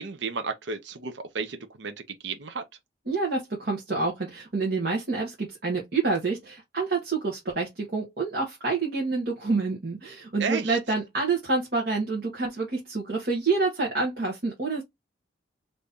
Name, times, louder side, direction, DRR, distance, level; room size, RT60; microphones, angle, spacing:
voice 1, 0.0-2.6 10.4-10.8, right 4 dB, 70° right, 0.6 m, -33 dB
voice 2, 3.1-14.8, right 3 dB, 50° right, 1.2 m, -28 dB
3.0 x 2.7 x 3.6 m
head